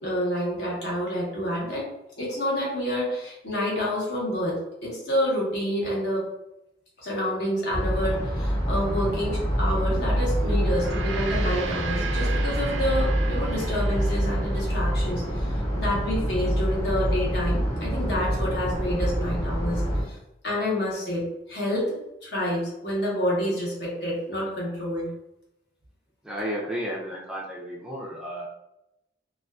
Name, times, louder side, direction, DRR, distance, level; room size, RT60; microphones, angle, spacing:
voice 1, 0.0-1.9 2.2-6.3 7.0-20.2 20.4-25.1, equal, 65° left, -5 dB, 1.0 m, -28 dB
sound 1, 7.7-20.0, equal, 25° left, 0.7 m, -26 dB
Gong, 10.6-15.2, right 6 dB, 80° right, 0.4 m, -36 dB
voice 2, 26.2-28.5, equal, 5° right, -4 dB, 0.3 m, -33 dB
2.5 x 2.3 x 2.2 m, 0.87 s
head